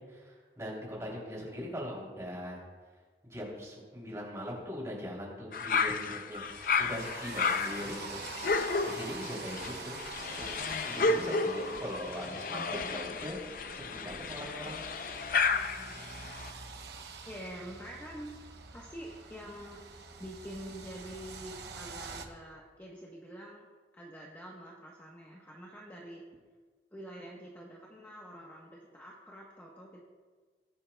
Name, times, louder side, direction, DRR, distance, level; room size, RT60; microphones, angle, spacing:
voice 1, 0.0-2.6 3.2-8.2 8.9-13.4 13.7-14.8, equal, 15° right, -4 dB, 3.2 m, -41 dB
sound 1, 5.5-16.5, left 4 dB, 50° left, 0.5 m, -32 dB
sound 2, 6.4-22.3, right 4 dB, 70° right, 0.9 m, -46 dB
voice 2, 15.5-16.0 17.2-19.9 20.2-23.7 23.9-26.2 26.9-30.0, equal, 10° left, -4 dB, 1.1 m, -46 dB
20.5 x 8.5 x 2.3 m, 1.5 s
head